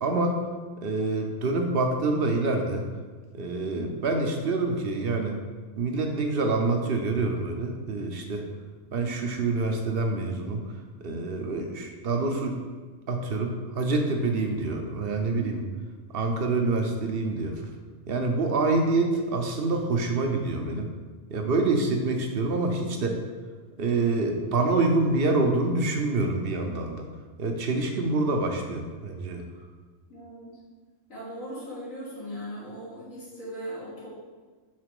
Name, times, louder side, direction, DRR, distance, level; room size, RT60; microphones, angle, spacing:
voice 1, 0.0-0.4 0.8-2.8 3.3-5.4 5.8-8.5 8.9-10.6 11.0-12.6 13.1-15.6 16.1-17.6 18.1-20.9 21.3-23.2 23.8-27.0 27.4-29.4, right 3 dB, 55° right, 3 dB, 0.8 m, -26 dB
voice 2, 15.3-15.6 20.3-20.6 30.1-30.6 31.1-34.1, equal, 90° left, -8 dB, 2.4 m, -39 dB
5.8 x 4.1 x 4.8 m, 1.4 s
omnidirectional pair, 1.3 m